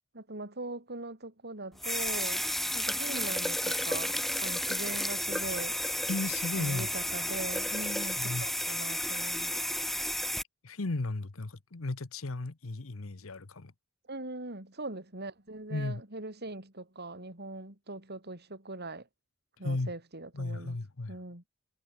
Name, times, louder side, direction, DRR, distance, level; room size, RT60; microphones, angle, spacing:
voice 1, 0.1-2.5 2.7-4.2 4.4-5.8 6.6-9.5 14.1-19.1 19.6-20.8 21.1-21.4, right 2 dB, 55° right, 5.5 m, -41 dB
sound 1, 1.8-10.4, equal, ahead, 1.2 m, -32 dB
voice 2, 6.1-6.9 8.2-8.5 10.6-13.7 15.7-16.0 19.6-19.9 20.3-21.2, left 2 dB, 85° left, 1.1 m, -35 dB
head